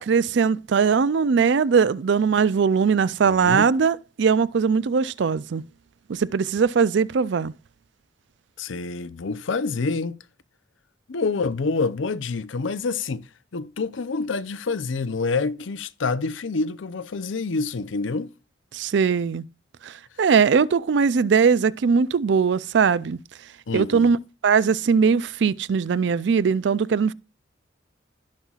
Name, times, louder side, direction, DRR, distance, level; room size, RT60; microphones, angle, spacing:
voice 1, 0.0-5.6 6.1-7.5 18.7-19.5 19.8-23.2 23.7-24.2 24.4-27.1, right 6 dB, 65° right, 0.4 m, -20 dB
voice 2, 3.2-3.7 8.6-10.2 11.1-18.3 23.7-24.1, left 4 dB, 85° left, 0.6 m, -27 dB
16.5 x 5.6 x 2.4 m
head